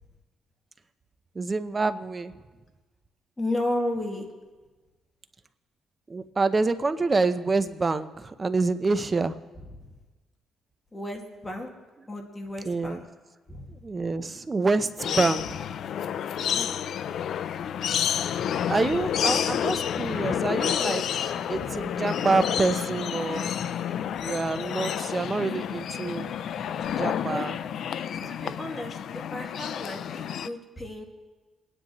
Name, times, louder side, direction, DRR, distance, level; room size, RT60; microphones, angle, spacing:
voice 1, 1.3-2.3 6.1-9.4 12.6-13.0 13.8-15.6 18.2-18.4 18.7-23.5 24.2-26.3 27.0-27.6 28.2-28.6, right 3 dB, 30° right, 11 dB, 0.7 m, -27 dB
voice 2, 3.4-4.3 10.9-11.7 12.1-13.0 13.5-13.7 16.4-16.7 21.6-21.7 27.3-27.5 28.3-31.0, left 1 dB, 20° left, 1 dB, 2.0 m, -33 dB
sound 1, 15.0-30.5, left 9 dB, 65° left, 0.4 m, -29 dB
26.5 x 10.0 x 3.1 m, 1.3 s
cardioid pair, 90°, 0 cm